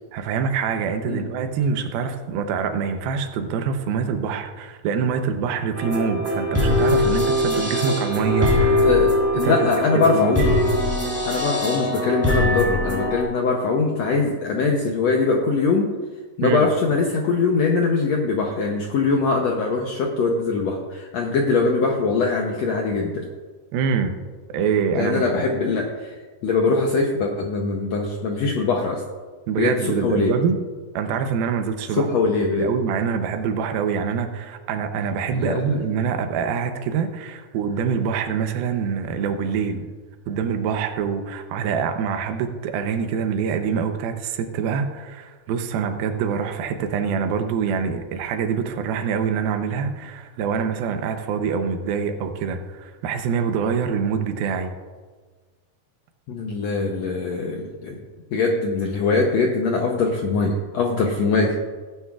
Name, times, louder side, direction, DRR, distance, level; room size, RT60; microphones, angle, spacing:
voice 1, 0.1-8.9 9.4-10.4 16.4-16.7 23.7-24.2 24.5-25.5 29.5-30.6 30.9-32.1 32.6-39.9 40.3-54.7, right 6 dB, 90° right, 7 dB, 2.7 m, -25 dB
sound 1, 5.7-13.2, left 1 dB, 5° right, 1.8 m, -21 dB
voice 2, 8.8-10.5 11.2-15.9 16.4-23.3 24.9-26.1 26.4-29.0 29.6-30.3 31.9-32.7 35.3-35.6 56.3-58.0 58.3-61.6, left 4 dB, 80° left, 1 dB, 1.5 m, -22 dB
17.5 x 9.3 x 2.4 m, 1.4 s
omnidirectional pair, 4.1 m